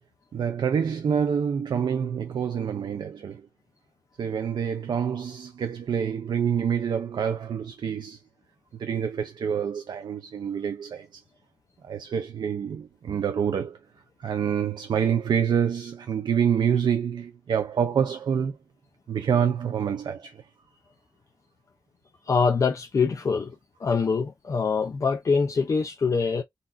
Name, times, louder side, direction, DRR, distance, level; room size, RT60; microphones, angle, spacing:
voice 1, 0.3-3.5 4.2-8.2 8.8-11.2 11.8-13.8 14.2-18.6 19.1-20.5, right 7 dB, 80° right, 0.5 m, -27 dB
voice 2, 22.3-23.5 23.8-26.4, left 5 dB, 45° left, 0.5 m, -24 dB
3.8 x 2.5 x 2.5 m
wide cardioid pair, 130°, 7 cm